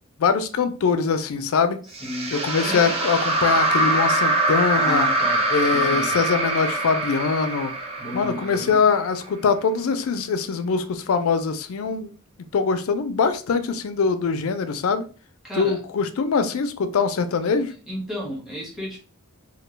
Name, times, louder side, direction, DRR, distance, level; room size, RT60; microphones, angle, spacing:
voice 1, 0.2-1.8 2.3-5.1 5.5-7.7 8.1-12.1 12.5-15.1 15.6-17.7, left 5 dB, 85° left, 0.4 m, -23 dB
voice 2, 1.8-2.4 2.7-2.9 4.7-6.2 8.0-8.8 15.4-15.8 17.7-19.0, equal, ahead, 1.0 m, -33 dB
sound 1, 1.9-9.2, right 2 dB, 30° right, 0.5 m, -23 dB
2.2 x 2.2 x 3.1 m
head